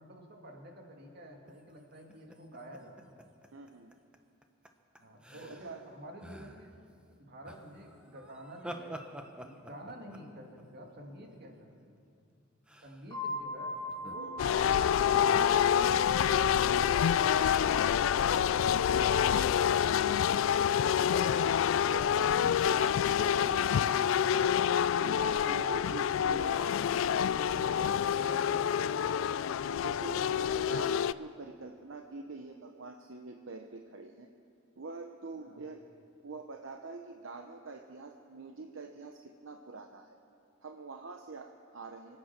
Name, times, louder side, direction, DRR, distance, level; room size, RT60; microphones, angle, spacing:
voice 1, 0.0-3.1 5.0-9.0 9.4-12.0 12.8-14.3 15.0-16.0 16.4-18.3 18.7-19.8 25.5-29.2 35.4-35.6, right 1 dB, 50° right, 1 dB, 2.1 m, -49 dB
sound 1, 1.5-4.2 4.4-4.7 5.0-5.9 6.2-6.8 7.5-11.7 12.7-13.1 13.9-14.7 15.3-15.4, equal, 5° right, 0.8 m, -48 dB
voice 2, 3.5-3.9 5.3-5.9 14.2-14.4 21.8-22.8 23.1-24.5 25.0-26.6 26.9-27.0 29.6-34.3 34.8-35.9 36.2-40.2 40.6-42.2, right 3 dB, 70° right, 3 dB, 0.8 m, -45 dB
sound 2, 13.1-22.7, left 1 dB, 20° left, 2.2 m, -44 dB
sound 3, 14.4-31.1, left 8 dB, 75° left, 0.3 m, -27 dB
25.0 x 8.7 x 6.0 m, 2.4 s
head